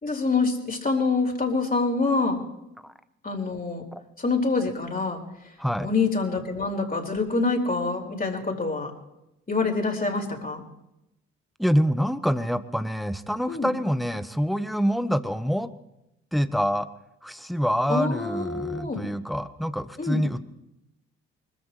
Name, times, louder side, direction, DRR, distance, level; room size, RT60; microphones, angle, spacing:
voice 1, 0.0-2.4 3.2-3.8 4.2-5.2 5.8-8.9 9.5-10.6 13.5-13.7 17.9-19.1 20.0-20.2, left 3 dB, 25° left, 0 dB, 4.6 m, -26 dB
voice 2, 11.6-15.7 16.3-16.9 17.2-20.4, equal, ahead, 12 dB, 1.1 m, -26 dB
25.0 x 14.5 x 3.3 m, 0.89 s
hypercardioid pair, 50°, 33 cm